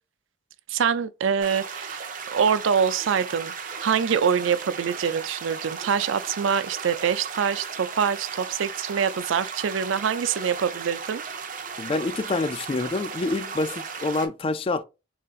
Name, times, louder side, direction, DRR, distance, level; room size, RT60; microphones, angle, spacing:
voice 1, 0.7-11.2, right 7 dB, 70° right, 0.4 m, -25 dB
sound 1, 1.4-14.3, right 5 dB, 40° right, 0.7 m, -36 dB
voice 2, 11.8-14.8, left 3 dB, 30° left, 0.3 m, -27 dB
4.1 x 3.7 x 2.4 m
head